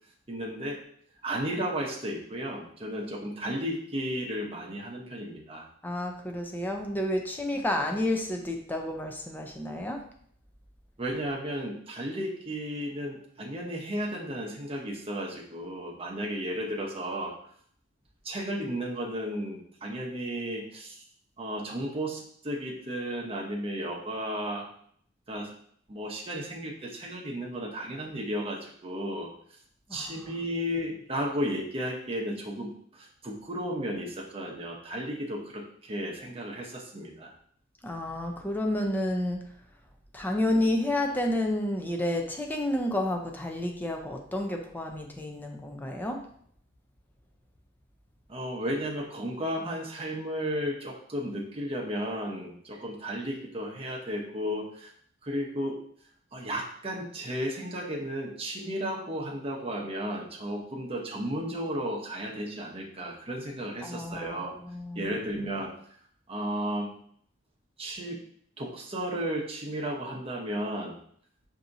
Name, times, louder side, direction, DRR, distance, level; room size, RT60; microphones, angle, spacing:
voice 1, 0.3-0.8 1.2-5.7 11.0-17.3 18.2-20.9 21.4-24.7 25.3-25.5 25.9-29.3 29.9-37.3 48.3-54.9 55.2-55.8 56.3-64.6 65.0-65.7 66.3-66.9 67.8-68.2 68.6-70.9, equal, 30° right, -2 dB, 0.8 m, -34 dB
voice 2, 5.8-10.0 29.9-30.3 37.8-39.4 40.1-46.2 63.8-65.1, left 1 dB, 10° left, 2 dB, 0.4 m, -30 dB
5.8 x 2.8 x 2.6 m, 0.62 s
head